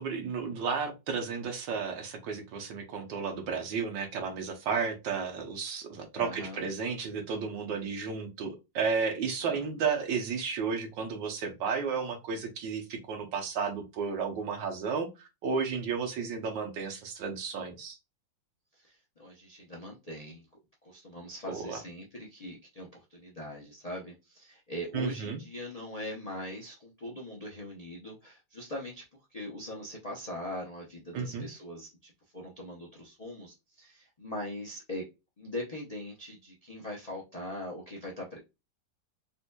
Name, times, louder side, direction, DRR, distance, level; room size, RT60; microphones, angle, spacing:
voice 1, 0.0-18.0 21.5-21.8 24.9-25.4 31.1-31.5, right 5 dB, 75° right, 4 dB, 1.5 m, -33 dB
voice 2, 6.1-6.6 9.4-9.7 18.7-20.5 20.8-29.0 29.3-35.0 35.4-38.4, left 1 dB, 80° left, -3 dB, 0.3 m, -41 dB
4.2 x 2.6 x 2.2 m, 0.25 s
omnidirectional pair, 2.0 m